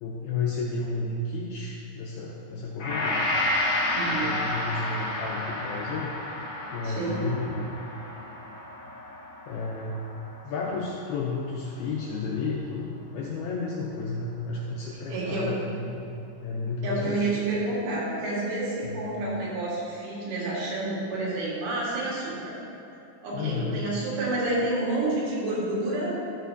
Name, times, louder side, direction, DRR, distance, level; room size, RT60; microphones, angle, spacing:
voice 1, 0.0-3.2 4.1-6.1 6.7-7.7 9.5-10.1 10.4-16.2 16.4-17.4 18.8-19.2 23.3-23.8, left 3 dB, 90° left, -3 dB, 2.2 m, -32 dB
Gong, 2.8-11.2 11.6-11.7, left 1 dB, 65° left, 2.8 m, -31 dB
voice 2, 3.9-4.3 6.8-7.2 15.1-15.6 16.8-22.5 23.2-26.2, right 2 dB, 75° right, -6 dB, 3.9 m, -29 dB
12.5 x 6.2 x 2.7 m, 2.8 s
omnidirectional pair, 5.1 m